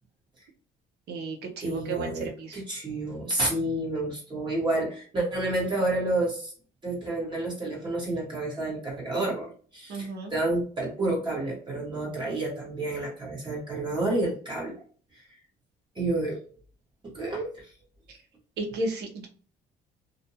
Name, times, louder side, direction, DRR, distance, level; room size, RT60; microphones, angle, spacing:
voice 1, 1.1-2.6 9.9-10.3 18.6-19.3, right 3 dB, 65° right, 2 dB, 0.7 m, -33 dB
voice 2, 1.6-6.5 6.8-14.7 15.1-15.2 15.9-16.4 17.1-17.7, right 2 dB, 25° right, -4 dB, 1.1 m, -30 dB
2.5 x 2.2 x 2.7 m, 0.43 s
cardioid pair, 135°, 18 cm